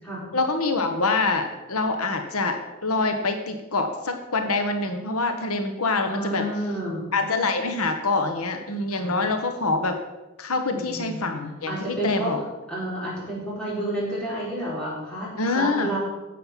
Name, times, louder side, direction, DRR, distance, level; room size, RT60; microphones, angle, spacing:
voice 1, 0.3-6.4 7.1-10.0 10.4-12.4 15.4-15.9, left 3 dB, 85° left, 6 dB, 1.2 m, -25 dB
voice 2, 6.1-7.1 8.9-9.1 10.7-11.3 11.7-12.3 12.7-16.0, right 1 dB, 5° left, -8 dB, 4.8 m, -30 dB
9.7 x 7.7 x 7.4 m, 1.1 s
head